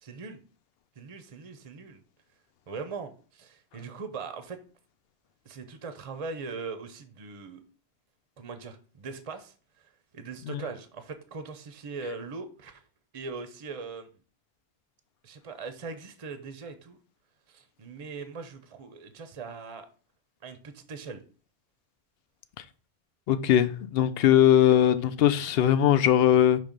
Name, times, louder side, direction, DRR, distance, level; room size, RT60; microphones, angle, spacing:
voice 1, 0.0-0.4 1.0-2.0 2.7-4.6 5.5-7.6 8.4-9.5 10.1-12.8 13.1-14.1 15.2-17.0 17.5-19.9 20.4-21.2, right 4 dB, 40° right, 0.6 m, -40 dB
voice 2, 23.3-26.6, left 10 dB, 70° left, 0.8 m, -20 dB
5.9 x 3.2 x 5.0 m
omnidirectional pair, 1.1 m